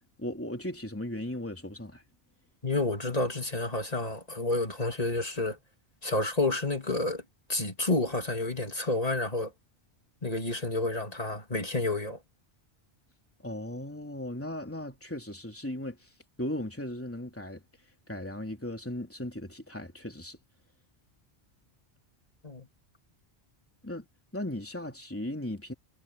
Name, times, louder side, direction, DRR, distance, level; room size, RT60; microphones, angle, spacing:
voice 1, 0.2-2.0 13.4-16.1 16.4-17.6 18.1-20.4 23.8-24.1 24.3-25.7, left 1 dB, 10° left, 3.4 m, -37 dB
voice 2, 2.6-5.6 6.0-7.2 7.5-9.5 10.2-12.2 22.4-22.7, left 2 dB, 35° left, 3.1 m, -30 dB
omnidirectional pair, 1.1 m